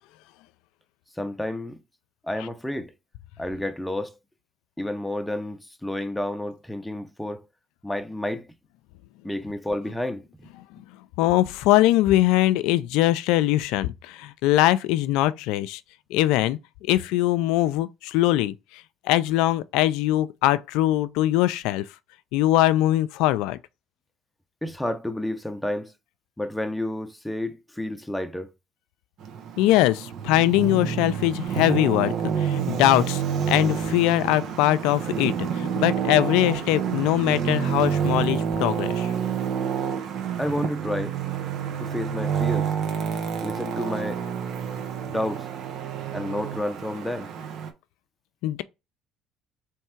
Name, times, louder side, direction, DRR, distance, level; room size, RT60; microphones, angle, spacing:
voice 1, 1.2-1.8 2.2-2.9 3.4-4.1 4.8-7.4 7.8-8.5 9.2-10.5 24.6-25.9 26.4-28.5 40.4-41.2 41.8-42.7 43.4-44.2 45.0-45.5 46.1-47.3, left 1 dB, 5° left, 0.6 m, -30 dB
voice 2, 11.2-15.8 16.1-18.5 19.0-21.8 22.3-23.6 29.6-39.1 48.4-48.6, left 15 dB, 80° left, 0.3 m, -22 dB
Traffic noise roadway noise, 29.2-47.7, right 7 dB, 70° right, 0.8 m, -28 dB
3.5 x 3.2 x 4.4 m
supercardioid pair, 75°, 0 cm